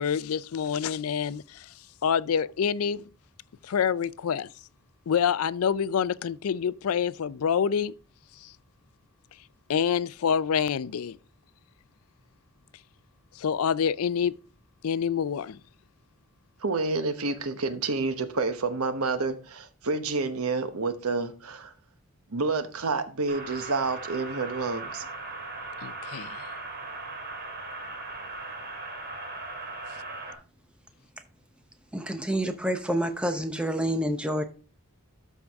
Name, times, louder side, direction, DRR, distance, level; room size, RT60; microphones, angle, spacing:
voice 1, 0.0-1.7 2.0-3.1 3.6-4.5 5.1-7.9 8.4-8.5 9.7-11.2 13.4-14.3 14.8-15.6 25.8-26.5, left 7 dB, 80° left, 0.4 m, -27 dB
voice 2, 16.6-21.7 22.3-25.0, right 3 dB, 85° right, 1.0 m, -29 dB
sound 1, 23.3-30.3, right 3 dB, 50° right, 2.3 m, -38 dB
voice 3, 31.9-34.5, right 1 dB, 5° right, 0.8 m, -28 dB
12.5 x 4.7 x 3.5 m
head